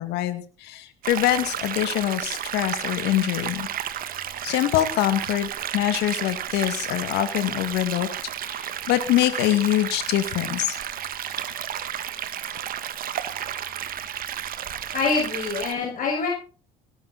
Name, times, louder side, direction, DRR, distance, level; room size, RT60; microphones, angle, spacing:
voice 1, 0.0-3.7 4.4-8.1 8.4-10.8, left 13 dB, 65° left, 11 dB, 2.1 m, -24 dB
sound 1, 1.0-15.7, right 10 dB, 50° right, 1.6 m, -32 dB
voice 2, 14.9-16.3, left 4 dB, 50° left, 0 dB, 5.6 m, -25 dB
18.0 x 11.0 x 4.1 m, 0.38 s
hypercardioid pair, 65°, 18 cm